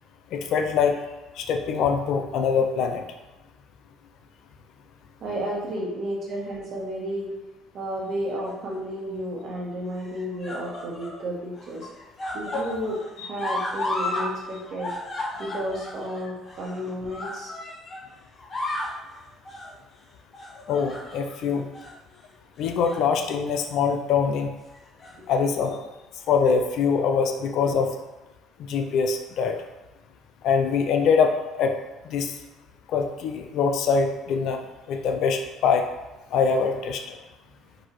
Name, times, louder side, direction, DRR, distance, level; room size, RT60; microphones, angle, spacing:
voice 1, 0.3-1.0 1.4-3.0 12.5-12.6 13.2-13.3 20.7-21.7 22.6-24.5 25.3-25.8 26.3-27.9 28.7-29.6 30.4-31.7 32.0-32.3 32.9-34.6 34.9-35.8 36.3-37.2, left 5 dB, 65° left, 5 dB, 0.5 m, -23 dB
voice 2, 5.2-7.3 7.7-11.9 12.3-14.9 15.4-17.5 21.5-21.6 25.1-25.3 28.8-28.9, equal, 55° right, -3 dB, 1.5 m, -32 dB
sound 1, 8.4-9.0 9.9-11.2 11.5-14.3 14.6-18.0 18.4-19.0 19.4-19.7 20.3-21.4 21.7-21.9 22.6-23.1 23.5-23.6 24.7-25.4 26.3-26.4, left 2 dB, 40° left, 1.0 m, -34 dB
4.1 x 2.7 x 4.6 m, 1.1 s
supercardioid pair, 75°, 0 cm